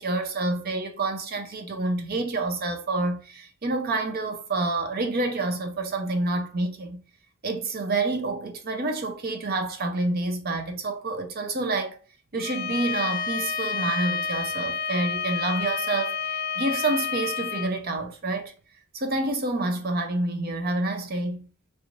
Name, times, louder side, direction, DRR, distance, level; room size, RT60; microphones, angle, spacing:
voice 1, 0.0-7.0 7.4-12.0 12.3-16.2 16.6-18.5 18.9-21.5, right 2 dB, 50° right, 0.7 m, -28 dB
Bowed string instrument, 12.4-17.7, left 6 dB, 55° left, 0.4 m, -29 dB
3.3 x 3.0 x 2.6 m
head